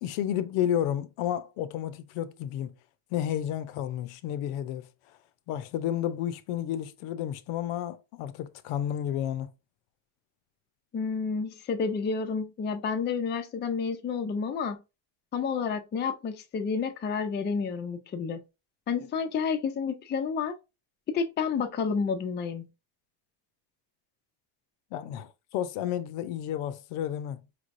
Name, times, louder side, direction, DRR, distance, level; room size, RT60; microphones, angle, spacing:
voice 1, 0.0-2.7 3.1-4.9 5.5-9.5 24.9-27.4, left 10 dB, 75° left, 0.7 m, -31 dB
voice 2, 10.9-14.8 15.3-18.4 18.9-20.6 21.1-22.7, left 5 dB, 20° left, 0.4 m, -30 dB
4.9 x 3.3 x 2.5 m
cardioid pair, 130°, 50 cm